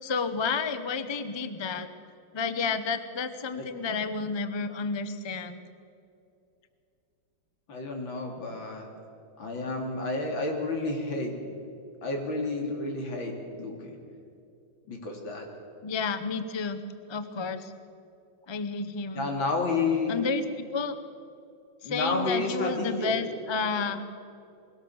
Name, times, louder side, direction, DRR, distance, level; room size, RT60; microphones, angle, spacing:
voice 1, 0.0-1.9 2.3-5.6 15.8-16.8 17.1-17.7 18.5-19.3 20.1-21.0 21.8-24.0, left 4 dB, 40° left, 10 dB, 0.3 m, -31 dB
voice 2, 7.7-8.9 9.4-11.6 12.0-13.9 14.9-15.5 19.1-20.1 21.8-23.2, left 3 dB, 75° left, 2 dB, 3.5 m, -30 dB
21.0 x 17.0 x 7.2 m, 2.6 s
omnidirectional pair, 2.1 m